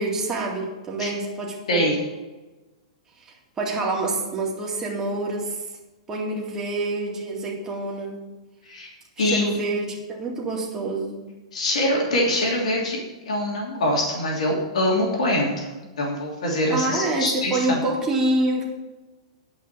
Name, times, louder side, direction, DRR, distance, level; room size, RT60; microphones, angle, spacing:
voice 1, 0.0-1.9 3.2-5.6 6.1-8.2 9.2-11.2 16.7-18.6, right 2 dB, 15° right, -2 dB, 2.3 m, -27 dB
voice 2, 9.2-9.6 11.5-13.0 13.3-17.8, left 1 dB, 90° left, -2 dB, 2.9 m, -24 dB
10.5 x 5.4 x 7.4 m, 1.2 s
hypercardioid pair, 150°, 3 cm